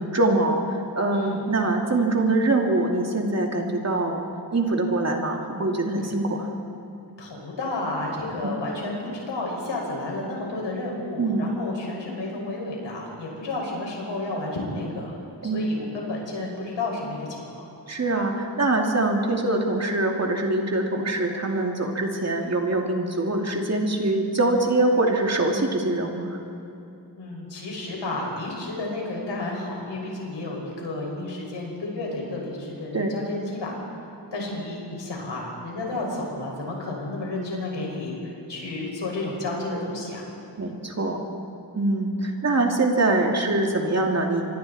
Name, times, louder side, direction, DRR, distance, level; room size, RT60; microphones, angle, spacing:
voice 1, 0.0-4.2 4.5-6.5 8.4-8.5 11.2-11.5 15.4-15.7 17.9-26.4 32.9-33.1 40.6-41.3 41.7-44.4, right 2 dB, 40° right, 1 dB, 2.7 m, -24 dB
voice 2, 1.1-1.4 7.2-15.1 15.5-17.6 27.2-40.3, left 2 dB, 90° left, -2 dB, 6.1 m, -31 dB
27.0 x 24.0 x 4.3 m, 2.7 s
wide cardioid pair, 115°, 42 cm